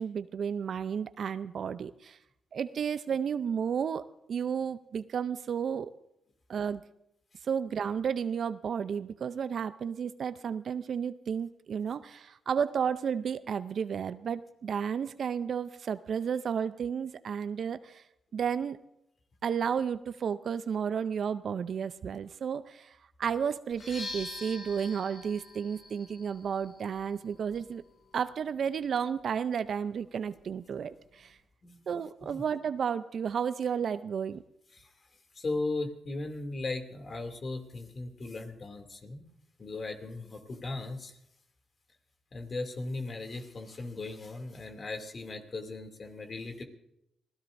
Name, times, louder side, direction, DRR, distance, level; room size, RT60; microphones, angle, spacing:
voice 1, 0.0-2.2 2.5-5.9 6.5-6.8 7.5-18.0 18.3-18.8 19.4-22.9 23.2-27.8 28.1-31.3 31.9-34.4, right 7 dB, 65° right, 14 dB, 0.5 m, -32 dB
sound 1, 23.7-31.5, left 2 dB, 65° left, 5.8 m, -47 dB
voice 2, 35.3-39.2 39.6-41.2 42.3-46.6, left 2 dB, 45° left, 4 dB, 2.6 m, -37 dB
27.0 x 17.0 x 2.6 m, 0.81 s
supercardioid pair, 60°, 0 cm